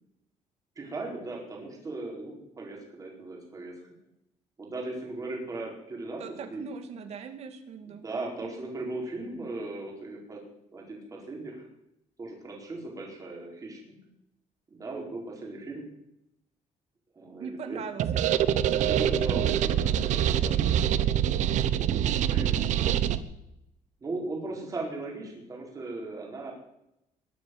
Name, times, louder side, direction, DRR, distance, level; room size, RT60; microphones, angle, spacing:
voice 1, 0.7-3.7 4.6-6.6 7.9-10.4 10.7-11.7 12.2-14.0 14.7-15.9 17.1-17.8 18.7-21.4 21.9-23.0 24.0-26.5, right 2 dB, 25° right, -1 dB, 4.8 m, -38 dB
voice 2, 6.2-8.1 8.4-8.7 17.4-18.5 22.2-22.5, right 6 dB, 60° right, 7 dB, 2.4 m, -41 dB
sound 1, 18.0-23.2, right 10 dB, 75° right, 1.0 m, -25 dB
22.5 x 8.1 x 8.0 m, 0.83 s
cardioid pair, 150°, 13 cm